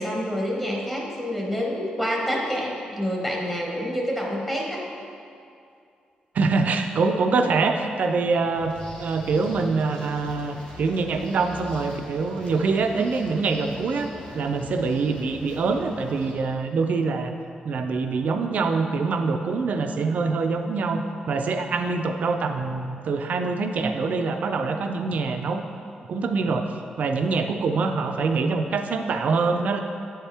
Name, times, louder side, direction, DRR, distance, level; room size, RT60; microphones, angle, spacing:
voice 1, 0.0-4.8, equal, 10° left, -2 dB, 1.0 m, -27 dB
voice 2, 6.3-17.3 17.6-25.6 26.1-29.8, right 4 dB, 60° right, 6 dB, 0.4 m, -25 dB
sound 1, 8.5-16.3, left 1 dB, 45° left, 1.2 m, -43 dB
7.8 x 4.4 x 3.4 m, 2.4 s
cardioid pair, 120°, 3 cm